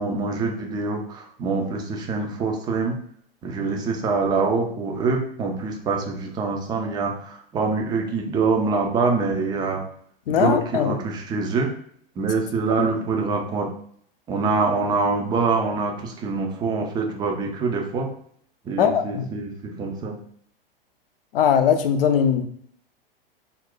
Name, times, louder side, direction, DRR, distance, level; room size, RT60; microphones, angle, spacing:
voice 1, 0.0-2.9 3.4-9.8 10.3-11.7 12.2-13.7 14.3-18.1 18.7-20.2, right 4 dB, 15° right, 2 dB, 0.3 m, -25 dB
voice 2, 10.3-10.9 18.8-19.2 21.3-22.5, left 8 dB, 70° left, 8 dB, 0.5 m, -20 dB
2.4 x 2.0 x 3.7 m, 0.63 s
figure-of-eight pair, 100°, 29 cm